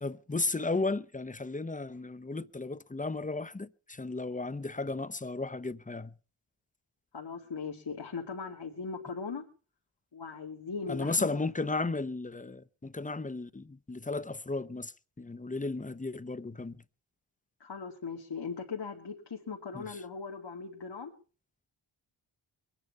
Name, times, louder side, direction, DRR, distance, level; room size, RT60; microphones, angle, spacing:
voice 1, 0.0-6.1 10.9-14.9 15.2-16.7 19.7-19.8, left 3 dB, 15° left, 0.8 m, -34 dB
voice 2, 7.1-9.4 10.1-11.4 17.6-21.1, left 5 dB, 55° left, 2.4 m, -39 dB
23.0 x 10.0 x 5.7 m
cardioid pair, 65°, 48 cm